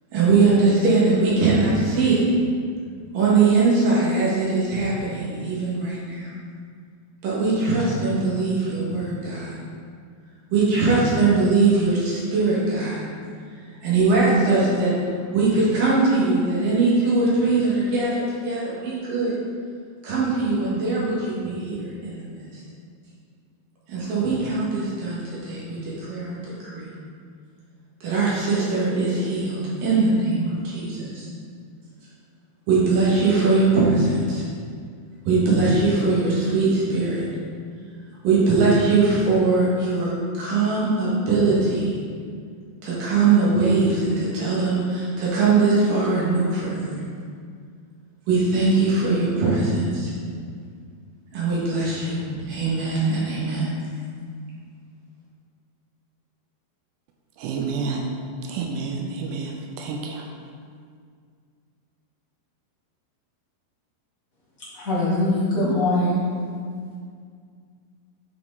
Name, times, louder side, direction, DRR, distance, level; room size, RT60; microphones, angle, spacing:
voice 1, 0.1-2.2 3.1-6.3 7.2-9.6 10.5-13.0 13.8-14.9 15.3-19.4 20.0-22.6 23.9-26.9 28.0-31.3 32.7-34.4 35.3-37.3 38.2-41.9 42.8-47.0 48.3-50.1 51.3-52.2 52.5-53.7, right 3 dB, 65° right, 3.2 m, -21 dB
voice 2, 57.4-58.0 58.5-60.3, right 4 dB, 85° right, 2.7 m, -29 dB
voice 3, 64.7-66.2, left 1 dB, 30° left, 1.5 m, -22 dB
9.4 x 5.1 x 3.9 m
omnidirectional pair, 4.7 m